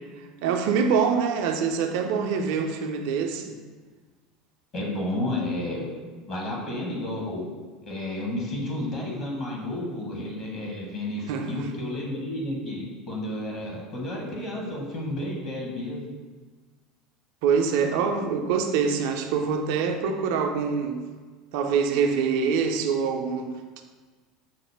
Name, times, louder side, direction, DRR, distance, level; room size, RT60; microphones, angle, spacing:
voice 1, 0.4-3.6 11.3-11.5 17.4-21.0 21.5-23.8, right 6 dB, 55° right, 5 dB, 0.3 m, -25 dB
voice 2, 4.7-5.9 6.3-7.5 7.8-16.0, left 1 dB, 45° left, -2 dB, 1.1 m, -31 dB
5.8 x 2.1 x 3.3 m, 1.4 s
figure-of-eight pair, 70°, 0 cm